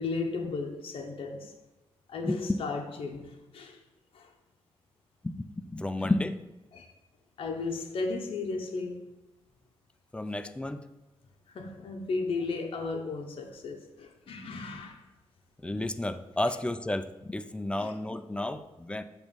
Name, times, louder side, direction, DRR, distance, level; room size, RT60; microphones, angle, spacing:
voice 1, 0.0-1.5 2.1-3.8 4.1-4.3 6.0-6.1 6.7-6.9 7.4-9.1 11.5-15.1 17.8-17.9, left 3 dB, 60° left, 0.7 m, -35 dB
voice 2, 5.2-6.4 10.1-10.9 15.6-19.0, left 1 dB, 10° left, 0.4 m, -32 dB
6.8 x 3.0 x 5.2 m
cardioid pair, 95°, 11 cm